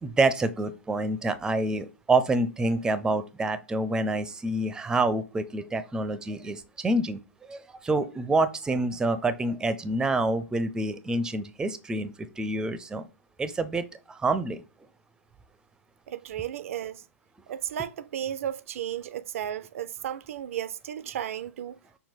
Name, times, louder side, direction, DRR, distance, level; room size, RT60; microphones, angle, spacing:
voice 1, 0.0-7.2 7.5-13.1 13.4-14.6, right 2 dB, 10° right, 0.4 m, -27 dB
voice 2, 16.1-17.0 17.5-21.8, right 10 dB, 65° right, 0.4 m, -34 dB
6.0 x 2.2 x 3.6 m
hypercardioid pair, 115°, 8 cm